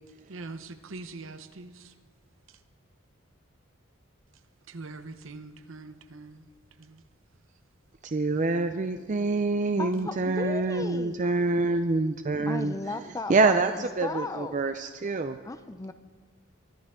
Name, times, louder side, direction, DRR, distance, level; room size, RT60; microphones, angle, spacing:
voice 1, 0.3-1.9 4.7-6.5 6.8-7.0, right 3 dB, 70° right, 0.8 m, -43 dB
voice 2, 8.0-12.7 13.3-15.4, right 3 dB, 35° right, 0.5 m, -26 dB
voice 3, 9.8-11.3 12.5-14.6 15.4-15.9, left 2 dB, 15° left, 0.5 m, -36 dB
23.0 x 13.0 x 3.7 m
head